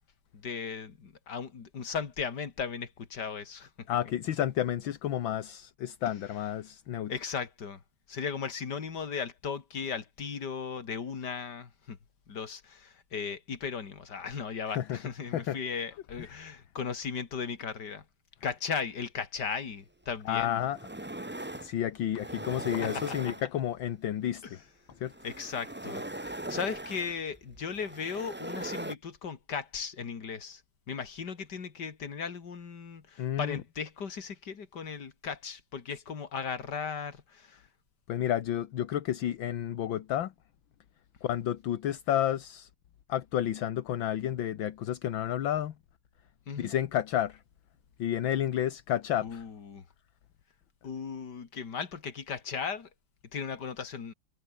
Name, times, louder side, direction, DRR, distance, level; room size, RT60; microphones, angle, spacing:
voice 1, 0.3-3.9 7.1-7.8 8.1-12.0 12.3-18.0 18.4-20.7 22.8-23.3 24.4-24.6 25.2-30.6 30.9-37.6 46.5-46.7 49.2-49.8 50.8-52.9 53.3-54.1, left 6 dB, 55° left, 2.8 m, -37 dB
voice 2, 3.9-7.1 14.7-15.0 15.3-15.6 16.2-16.3 20.3-21.3 21.6-24.6 25.0-25.1 33.2-33.6 38.1-40.3 41.2-42.7 43.1-45.7 46.6-47.4 48.0-49.4, left 11 dB, 70° left, 1.8 m, -31 dB
sound 1, 20.1-20.2 20.6-21.7 22.1-23.8 24.9-29.0, right 1 dB, 10° right, 0.5 m, -40 dB
omnidirectional pair, 2.3 m